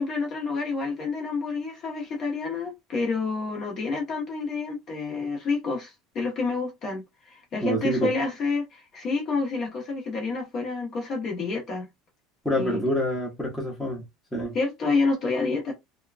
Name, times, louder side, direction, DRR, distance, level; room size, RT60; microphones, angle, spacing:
voice 1, 0.0-11.9 12.5-12.8 14.5-15.7, left 4 dB, 35° left, 0.9 m, -28 dB
voice 2, 7.6-8.1 12.4-14.0 14.3-14.5, equal, ahead, 0.8 m, -26 dB
2.9 x 2.2 x 2.4 m
cardioid pair, 170°, 0 cm